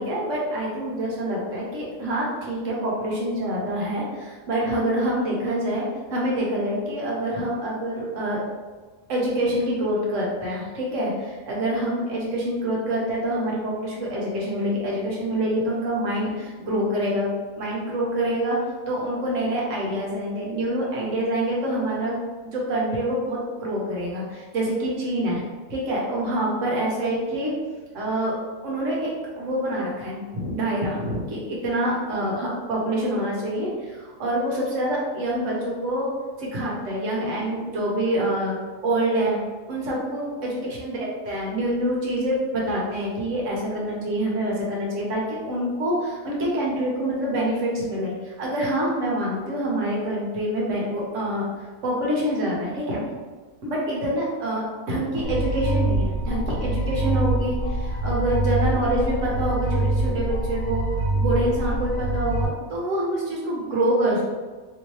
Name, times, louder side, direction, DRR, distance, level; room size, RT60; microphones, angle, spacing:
voice 1, 0.0-8.4 9.1-17.3 17.6-18.6 18.9-25.4 25.7-27.5 27.9-28.4 28.6-36.1 36.4-38.5 38.8-39.4 39.7-41.0 41.3-53.2 53.6-60.8 61.2-64.2, right 1 dB, 60° right, -4 dB, 1.1 m, -26 dB
sound 1, 55.2-62.4, right 2 dB, 65° left, 1.2 m, -25 dB
3.0 x 2.7 x 3.1 m, 1.4 s
omnidirectional pair, 1.7 m